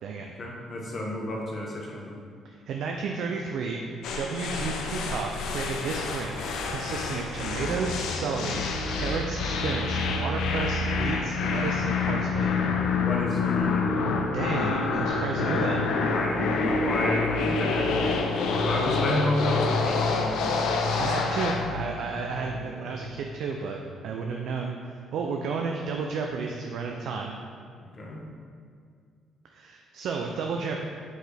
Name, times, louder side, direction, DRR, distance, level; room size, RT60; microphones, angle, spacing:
voice 1, 0.2-2.3 12.9-13.9 16.1-21.4 27.8-28.3, left 1 dB, 35° left, -1 dB, 1.1 m, -32 dB
voice 2, 2.7-6.4 6.7-8.6 8.9-12.5 14.3-15.9 21.0-27.4 29.5-30.8, right 4 dB, 70° right, 1 dB, 0.4 m, -32 dB
sound 1, 4.0-21.7, left 4 dB, 80° left, 0.5 m, -28 dB
sound 2, 10.9-23.0, left 3 dB, 40° right, 1.2 m, -35 dB
6.0 x 5.0 x 3.4 m, 2.1 s
cardioid pair, 120°, 0 cm